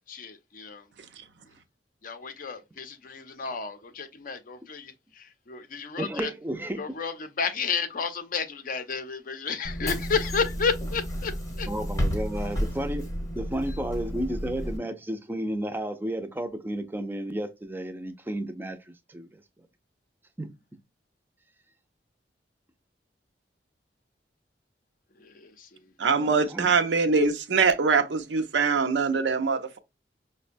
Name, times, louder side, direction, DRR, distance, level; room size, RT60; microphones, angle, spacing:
voice 1, 0.1-0.8 2.0-4.6 5.5-6.3 6.8-11.3 11.6-11.7 25.2-25.7, left 5 dB, 50° left, 0.5 m, -31 dB
voice 2, 6.0-6.9 11.7-13.1 13.3-18.8 19.1-19.3 20.4-20.5 26.2-26.7, right 1 dB, 10° right, 0.4 m, -32 dB
Bus / Engine, 9.6-14.8, equal, 20° left, 0.8 m, -31 dB
voice 3, 26.0-29.8, right 4 dB, 80° right, 0.6 m, -23 dB
5.1 x 2.1 x 2.5 m
head